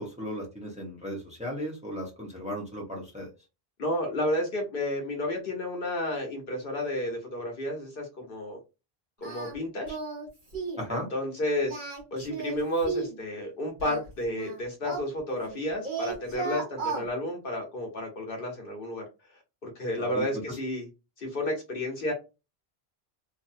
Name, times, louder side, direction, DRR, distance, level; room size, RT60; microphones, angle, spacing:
voice 1, 0.0-3.3 10.8-11.1 20.0-20.6, equal, 5° right, -2 dB, 0.8 m, -36 dB
voice 2, 3.8-8.6 9.2-10.0 10.9-11.8 12.1-19.0 19.6-20.9 21.2-22.1, left 1 dB, 60° left, 2 dB, 1.0 m, -31 dB
Singing, 9.2-9.5 9.9-10.3 10.5-10.8 11.6-13.2 13.8-15.6 15.8-17.1, right 4 dB, 50° right, 1.5 m, -34 dB
2.8 x 2.6 x 2.5 m, 0.28 s
omnidirectional pair, 1.0 m